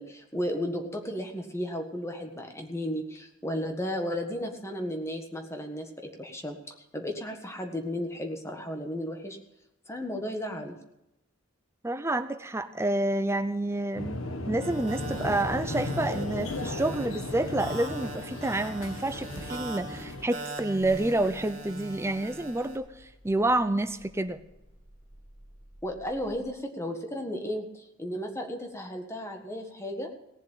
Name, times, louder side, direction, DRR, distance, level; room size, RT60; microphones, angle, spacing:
voice 1, 0.0-6.5 6.9-9.4 9.9-10.8 25.8-30.1, equal, 15° left, 3 dB, 1.6 m, -34 dB
voice 2, 11.8-24.4, right 2 dB, 10° right, 11 dB, 0.6 m, -29 dB
sound 1, 13.9-20.2, left 2 dB, 75° left, 1.6 m, -36 dB
sound 2, 14.6-22.8, right 2 dB, 35° right, 2.6 m, -42 dB
Car / Engine starting, 15.6-15.9 16.2-17.0 17.3-18.3 18.6-26.4, equal, 40° left, 4.8 m, -55 dB
18.0 x 7.3 x 9.2 m, 0.93 s
head